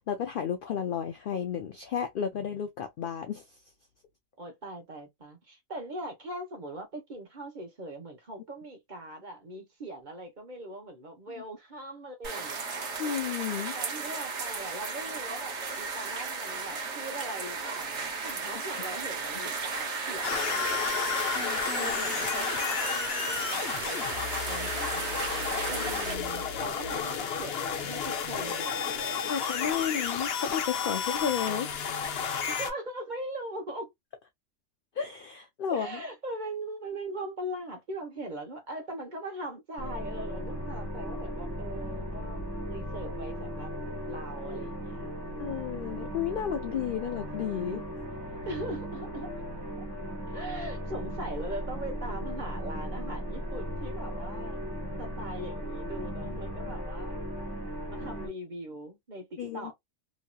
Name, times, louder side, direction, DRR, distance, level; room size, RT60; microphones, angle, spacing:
voice 1, 0.0-3.5 11.4-11.5 13.0-13.8 29.3-31.8 35.0-36.0 45.4-47.8 59.4-59.7, left 8 dB, 75° left, 0.5 m, -32 dB
voice 2, 4.4-12.9 13.7-20.9 21.7-25.4 25.7-30.1 32.5-33.9 35.7-43.7 44.1-45.7 48.5-49.3 50.3-54.6 55.0-57.1 57.9-59.7, right 1 dB, 40° right, 1.0 m, -41 dB
sound 1, 12.2-26.1, right 4 dB, 60° right, 1.1 m, -34 dB
sound 2, 20.2-32.7, left 6 dB, 55° left, 0.8 m, -32 dB
sound 3, 39.8-58.3, equal, 20° left, 1.5 m, -37 dB
3.0 x 2.8 x 2.2 m
omnidirectional pair, 1.4 m